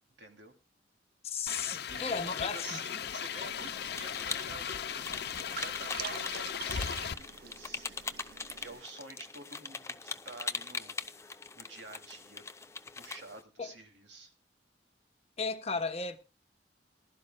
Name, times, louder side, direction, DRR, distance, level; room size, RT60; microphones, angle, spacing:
voice 1, 0.2-0.5 1.4-8.0 8.6-12.4 13.0-14.3, right 2 dB, 80° right, 2.5 m, -49 dB
voice 2, 1.2-2.8 13.6-13.7 15.4-16.2, left 5 dB, 35° left, 1.0 m, -35 dB
sound 1, 1.5-7.1, left 8 dB, 65° left, 0.6 m, -37 dB
sound 2, 2.3-13.4, left 4 dB, 15° left, 0.5 m, -42 dB
sound 3, 3.4-8.8, right 9 dB, 60° right, 0.5 m, -47 dB
19.5 x 12.0 x 2.2 m
head